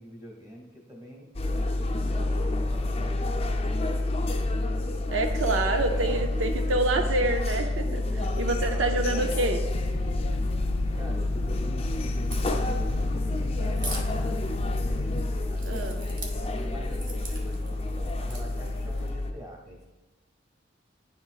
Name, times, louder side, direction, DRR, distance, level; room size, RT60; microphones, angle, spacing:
voice 1, 0.0-4.3 5.7-6.4 8.1-9.0 10.9-15.9 16.4-19.8, equal, 25° right, -1 dB, 1.6 m, -45 dB
sound 1, 1.3-19.3, left 2 dB, 30° left, 0.5 m, -28 dB
voice 2, 5.1-8.0 8.4-9.6 15.6-16.1, right 2 dB, 85° right, 5 dB, 0.5 m, -27 dB
sound 2, 9.7-15.2, left 2 dB, 85° left, 0.4 m, -36 dB
Crack, 12.2-19.1, right 3 dB, 45° right, 1.0 m, -44 dB
10.0 x 5.6 x 2.4 m, 1.1 s
head